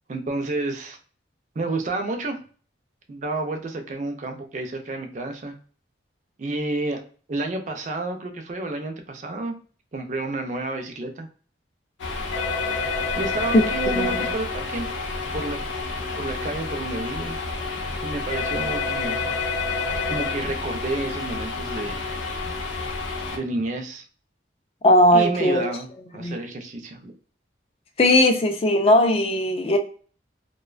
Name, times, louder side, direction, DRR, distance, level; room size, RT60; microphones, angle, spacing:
voice 1, 0.1-1.0 1.6-2.4 3.1-5.6 6.4-7.0 7.3-9.5 9.9-11.3 13.2-14.9 15.3-15.6 15.9-17.4 18.0-19.2 20.1-22.0 23.3-24.0 25.1-25.9 26.1-27.1, right 2 dB, 40° right, 0.4 m, -30 dB
sound 1, 12.0-23.4, left 4 dB, 80° left, 0.6 m, -28 dB
voice 2, 24.8-25.7 26.2-26.4 28.0-29.8, left 1 dB, 30° left, 0.3 m, -18 dB
2.5 x 2.1 x 2.3 m
head